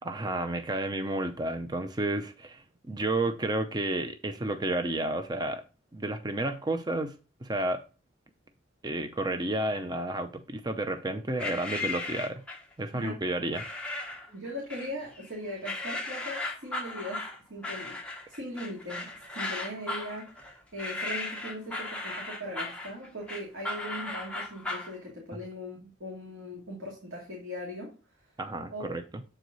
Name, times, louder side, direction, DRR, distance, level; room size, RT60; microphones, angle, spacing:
voice 1, 0.0-5.6 5.9-7.1 7.4-7.8 8.8-12.4 12.8-13.7 28.4-29.2, right 2 dB, 20° right, 0.6 m, -31 dB
sound 1, 11.4-12.7 13.5-14.3 14.7-15.3 15.6-24.9, left 2 dB, 5° left, 1.0 m, -36 dB
voice 2, 12.9-13.3 14.3-17.2 17.5-18.0 18.3-27.9 28.7-29.0, equal, 75° right, 2.3 m, -39 dB
7.7 x 4.7 x 4.0 m
head